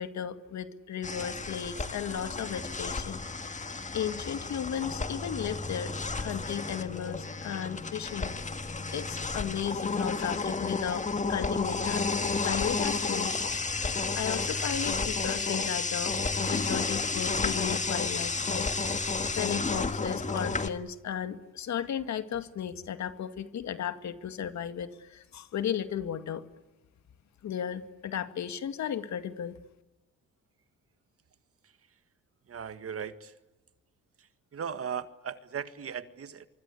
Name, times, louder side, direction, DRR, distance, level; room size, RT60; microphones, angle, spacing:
voice 1, 0.0-3.6 3.9-13.4 13.7-18.7 19.4-26.4 27.4-29.6, left 9 dB, 65° left, 10 dB, 2.2 m, -35 dB
sound 1, 1.0-20.7, left 4 dB, 25° left, 1.8 m, -32 dB
voice 2, 32.5-33.4 34.2-36.5, right 7 dB, 50° right, 11 dB, 1.8 m, -38 dB
24.5 x 24.5 x 8.4 m, 1.0 s
cardioid pair, 90°, 30 cm